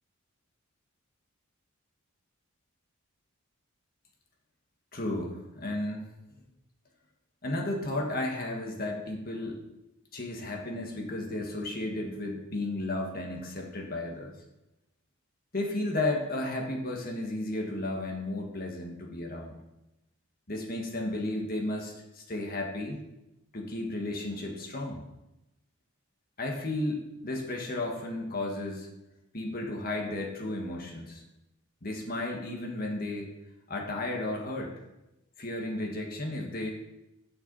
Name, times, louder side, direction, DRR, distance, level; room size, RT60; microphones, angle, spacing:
voice 1, 4.9-6.0 6.4-6.5 7.4-9.6 10.1-14.3 15.5-19.5 20.5-23.0 23.5-25.0 26.4-28.9 29.3-31.2 31.8-33.3 33.7-34.7 35.4-36.7, left 2 dB, 45° left, 0 dB, 1.8 m, -33 dB
17.0 x 6.1 x 4.1 m, 0.94 s
head